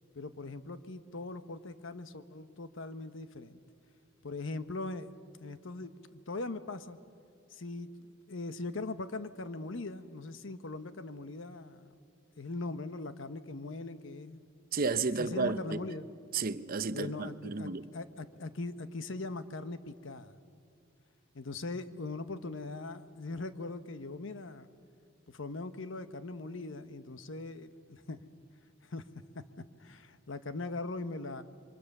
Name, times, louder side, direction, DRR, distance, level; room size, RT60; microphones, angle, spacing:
voice 1, 0.1-3.6 4.2-5.1 5.4-7.0 7.5-11.9 12.4-14.4 15.2-16.1 16.9-20.4 21.3-24.7 25.3-28.2 28.8-29.0 29.3-29.4 29.8-31.4, left 2 dB, 65° left, 1.0 m, -40 dB
voice 2, 14.7-15.9 16.3-17.9, right 4 dB, 45° right, 0.8 m, -32 dB
28.0 x 23.5 x 6.7 m
head